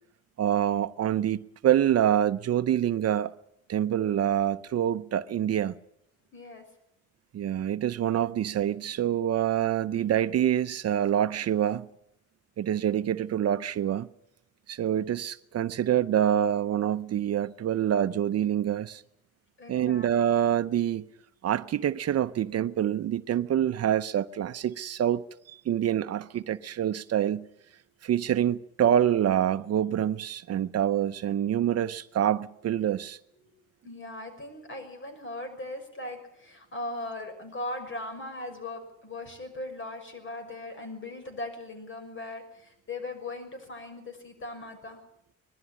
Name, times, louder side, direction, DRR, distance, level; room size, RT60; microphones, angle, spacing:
voice 1, 0.4-3.3 3.7-5.7 7.3-11.9 12.6-14.1 14.7-19.0 19.7-21.0 21.4-25.2 25.5-27.5 28.0-33.2, right 10 dB, 55° right, 0.7 m, -26 dB
voice 2, 6.3-6.7 19.6-20.5 33.3-33.6 33.8-45.0, left 2 dB, 40° left, 6.1 m, -39 dB
20.5 x 13.0 x 9.9 m
cardioid pair, 90°, 30 cm